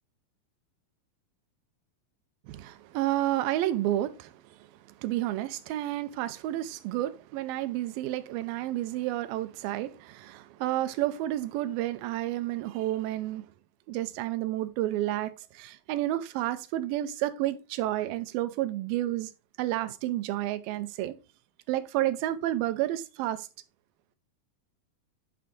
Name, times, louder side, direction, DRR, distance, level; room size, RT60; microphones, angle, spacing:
voice 1, 2.5-4.7 5.0-13.4 13.9-19.3 19.6-21.1 21.7-23.5, right 14 dB, 90° right, 2.4 m, -30 dB
8.6 x 3.4 x 3.8 m
omnidirectional pair, 4.0 m